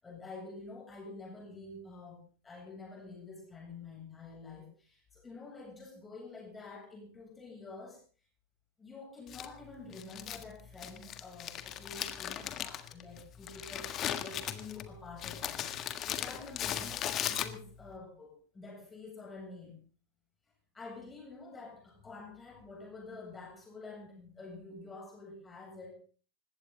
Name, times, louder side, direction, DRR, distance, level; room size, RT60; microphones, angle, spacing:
voice 1, 0.0-8.0 8.8-15.6 16.1-19.8 20.7-25.9, left 3 dB, 15° left, -1 dB, 7.7 m, -48 dB
Crumpling crinkling, 9.3-17.9, left 10 dB, 30° left, 1.6 m, -38 dB
20.5 x 16.5 x 4.0 m, 0.40 s
figure-of-eight pair, 90°, 0 cm